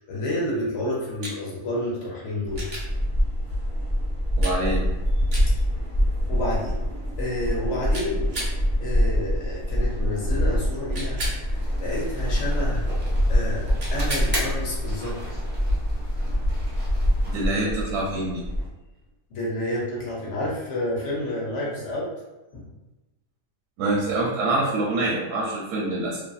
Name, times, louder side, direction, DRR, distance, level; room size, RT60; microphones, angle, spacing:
voice 1, 0.0-2.6 6.3-6.8 7.2-8.3 8.8-12.9 13.3-15.4 19.3-22.1 22.5-22.7, left 1 dB, 60° left, -4 dB, 0.8 m, -30 dB
sound 1, 1.2-1.4 2.6-2.9 4.4-4.6 5.3-5.5 7.9-8.6 10.9-11.4 13.8-14.3 16.6-16.7, right 1 dB, 55° right, 1.0 m, -33 dB
sound 2, 2.4-18.7, equal, 40° right, 0.9 m, -25 dB
voice 2, 4.4-4.8 17.3-18.4 23.8-26.2, right 2 dB, 85° right, -4 dB, 1.1 m, -25 dB
sound 3, 11.5-17.5, equal, 10° right, 0.5 m, -31 dB
2.6 x 2.5 x 2.3 m, 1.1 s
omnidirectional pair, 1.6 m